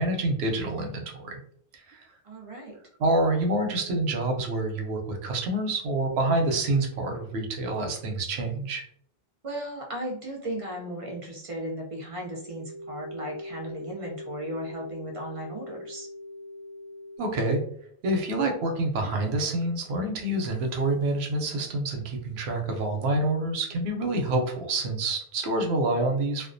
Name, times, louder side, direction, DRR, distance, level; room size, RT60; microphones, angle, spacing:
voice 1, 0.0-1.4 1.9-2.1 3.0-8.8 17.2-17.6 18.0-26.5, right 2 dB, 90° right, 2 dB, 0.9 m, -27 dB
voice 2, 2.2-2.8 9.4-16.1, right 1 dB, 50° right, -1 dB, 0.4 m, -36 dB
sound 1, 12.2-17.2, left 1 dB, 55° left, 0.6 m, -41 dB
2.3 x 2.1 x 2.5 m, 0.62 s
omnidirectional pair, 1.0 m